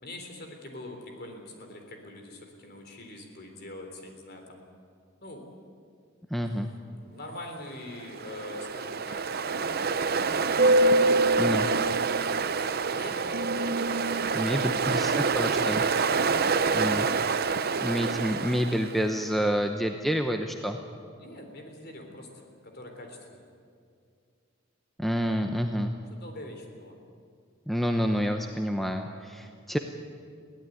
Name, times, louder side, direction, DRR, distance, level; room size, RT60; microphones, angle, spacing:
voice 1, 0.0-4.7 5.2-5.5 6.4-6.6 6.9-9.9 11.9-12.4 12.7-13.3 14.0-15.5 16.5-16.7 21.2-23.4 26.0-27.0, left 1 dB, 50° left, 3 dB, 3.8 m, -44 dB
voice 2, 6.3-6.7 11.4-11.7 14.3-15.8 16.7-17.1 17.8-20.8 25.0-25.9 27.7-29.8, equal, ahead, 4 dB, 0.8 m, -28 dB
Ocean, 8.0-19.1, right 3 dB, 45° right, 0.7 m, -26 dB
22.5 x 17.0 x 9.3 m, 2.2 s
head